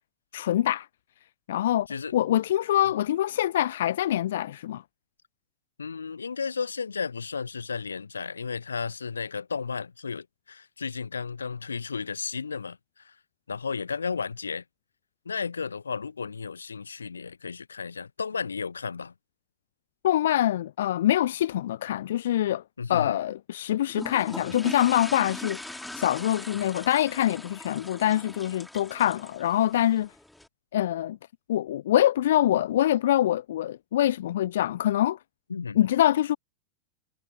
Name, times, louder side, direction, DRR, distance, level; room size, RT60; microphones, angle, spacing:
voice 1, 0.3-0.9 1.5-1.9 2.1-4.8 20.0-22.6 22.9-30.1 30.7-31.2 31.5-35.2 35.8-36.4, left 12 dB, 60° left, 0.3 m, -24 dB
voice 2, 5.8-13.1 13.5-14.6 15.2-19.1 22.8-23.2 35.5-35.8, left 5 dB, 75° left, 1.3 m, -33 dB
sound 1, 23.9-30.5, left 1 dB, 5° left, 2.1 m, -40 dB
figure-of-eight pair, 90°, 0 cm